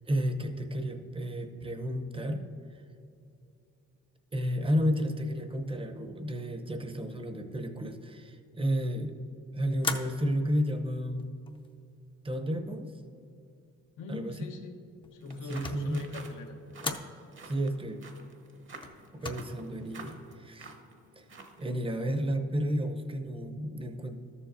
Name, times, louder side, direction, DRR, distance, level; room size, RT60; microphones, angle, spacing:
voice 1, 0.0-2.4 2.7-2.8 4.3-9.1 9.5-11.2 12.2-12.9 14.1-14.4 15.4-16.0 17.4-18.0 19.1-20.8 21.2-21.3 21.6-24.1, equal, 20° right, 6 dB, 0.7 m, -32 dB
sound 1, 9.8-10.5 11.2-11.8 15.0-16.0 16.8-17.2 18.8-19.3, left 3 dB, 15° left, 0.6 m, -36 dB
voice 2, 14.0-14.8 15.1-16.6, left 3 dB, 85° left, 3 dB, 1.0 m, -41 dB
sound 2, 15.2-21.7, right 3 dB, 40° right, 1.0 m, -50 dB
13.0 x 7.1 x 2.6 m, 2.6 s
cardioid pair, 90°, 30 cm